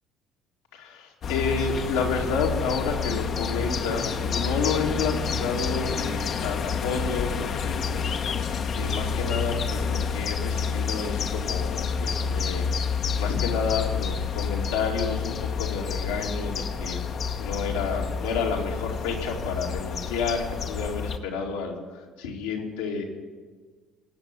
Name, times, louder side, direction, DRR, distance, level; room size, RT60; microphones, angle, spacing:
voice 1, 0.7-12.7 13.2-17.0 17.4-23.0, left 5 dB, 85° left, -2 dB, 2.5 m, -30 dB
sound 1, 1.2-21.2, left 5 dB, 50° left, 1.1 m, -29 dB
19.0 x 7.8 x 8.5 m, 1.5 s
hypercardioid pair, 60°, 0 cm